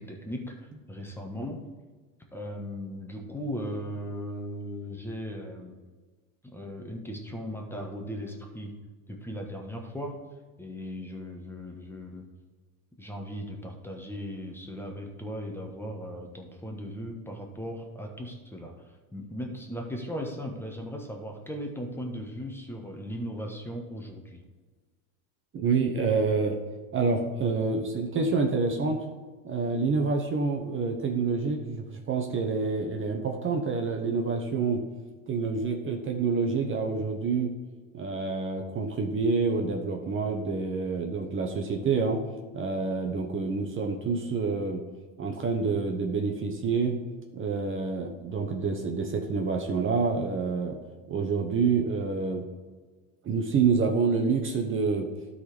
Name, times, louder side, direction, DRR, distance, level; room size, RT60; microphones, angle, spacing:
voice 1, 0.0-1.7 2.3-5.8 6.4-8.7 9.1-10.3 10.6-12.3 13.0-24.4, equal, 5° left, 1 dB, 1.4 m, -37 dB
voice 2, 25.5-26.6 26.9-29.0 29.4-34.8 35.3-37.5 37.9-42.2 42.5-44.8 45.2-46.9 47.3-50.8 51.1-52.4 53.2-55.1, right 4 dB, 30° right, 2 dB, 1.1 m, -27 dB
12.5 x 4.2 x 5.1 m, 1.4 s
hypercardioid pair, 95°, 39 cm